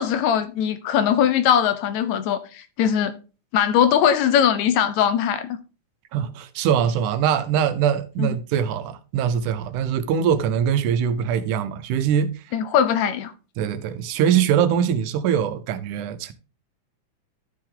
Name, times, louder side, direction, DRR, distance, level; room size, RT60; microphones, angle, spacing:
voice 1, 0.0-3.1 3.5-5.6 8.2-8.3 12.5-13.3, left 9 dB, 75° left, 1.8 m, -20 dB
voice 2, 6.1-12.3 13.6-16.3, right 8 dB, 80° right, 2.2 m, -22 dB
12.0 x 4.7 x 3.7 m
omnidirectional pair, 3.6 m